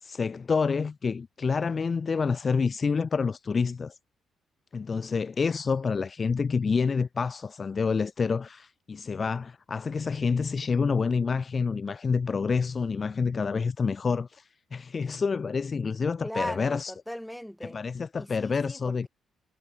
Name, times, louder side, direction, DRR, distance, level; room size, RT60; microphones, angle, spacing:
voice 1, 0.0-4.0 4.7-16.9 17.6-19.1, left 5 dB, 35° left, 0.6 m, -28 dB
voice 2, 16.2-17.8 18.1-19.1, equal, ahead, 3.2 m, -38 dB
cardioid pair, 90°, 0 cm